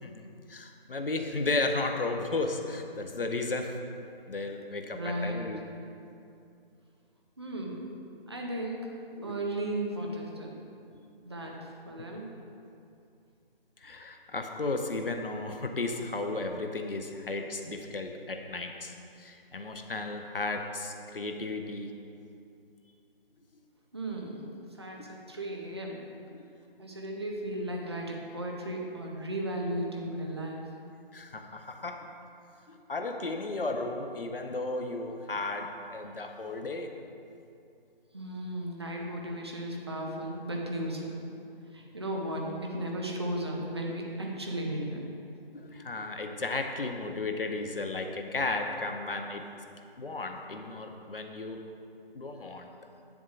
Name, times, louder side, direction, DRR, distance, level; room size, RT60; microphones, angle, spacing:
voice 1, 0.0-3.8 4.3-5.6 9.2-9.4 13.8-21.9 25.0-25.1 26.3-26.5 31.1-32.1 32.7-36.9 40.1-40.2 45.5-49.4 50.0-51.6 52.1-52.7, left 3 dB, 65° left, 4 dB, 0.8 m, -34 dB
voice 2, 4.9-5.5 7.4-7.9 8.3-9.0 9.2-10.6 11.2-12.3 23.9-24.4 24.7-26.0 26.8-30.6 38.1-41.2 41.7-45.0, right 1 dB, 25° right, -1 dB, 0.6 m, -35 dB
8.9 x 7.2 x 2.5 m, 2.5 s
figure-of-eight pair, 155°, 30 cm